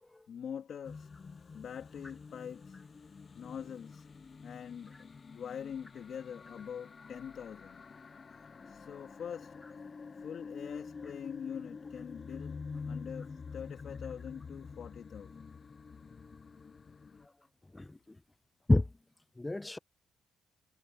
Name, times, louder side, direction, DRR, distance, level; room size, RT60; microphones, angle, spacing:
voice 1, 0.3-1.1 1.5-2.8 3.3-4.1 4.4-5.1 5.3-7.8 8.7-9.6 10.2-12.6 12.9-15.5, left 8 dB, 60° left, 2.9 m, -44 dB
Lost Stars, 0.8-17.3, left 5 dB, 35° left, 0.9 m, -47 dB
voice 2, 17.7-18.2 18.7-18.9 19.4-19.8, left 2 dB, 15° left, 0.4 m, -30 dB
cardioid pair, 90°, 0 cm